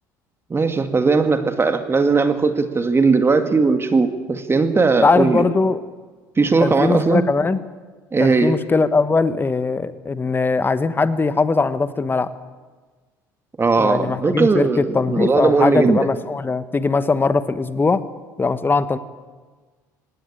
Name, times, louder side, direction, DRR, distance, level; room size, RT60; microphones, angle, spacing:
voice 1, 0.5-5.4 6.4-7.2 8.1-8.5 13.6-16.0, right 4 dB, 25° right, 8 dB, 1.9 m, -18 dB
voice 2, 5.0-5.8 6.6-7.6 8.2-12.3 13.8-18.0 18.4-19.0, left 4 dB, 20° left, 13 dB, 1.1 m, -20 dB
18.0 x 16.0 x 9.9 m, 1.4 s
hypercardioid pair, 65°, 10 cm